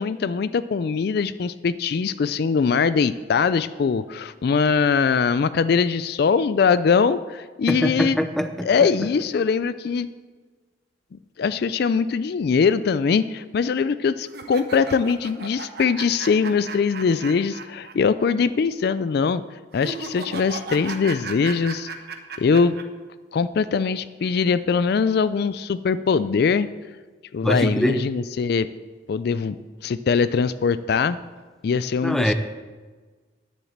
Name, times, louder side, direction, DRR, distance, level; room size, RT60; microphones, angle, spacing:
voice 1, 0.0-8.2 8.6-10.1 11.1-19.4 19.7-21.9 22.4-22.8 23.3-26.7 27.3-28.7 29.1-29.6 29.8-31.2 31.6-32.3, left 5 dB, 55° left, 15 dB, 0.3 m, -22 dB
voice 2, 7.7-8.9 27.4-28.0 32.0-32.3, equal, ahead, 8 dB, 0.5 m, -23 dB
sound 1, 14.3-17.9 18.2-18.3 19.7-22.8, right 4 dB, 55° right, 1.0 m, -35 dB
10.0 x 7.3 x 7.3 m, 1.4 s
head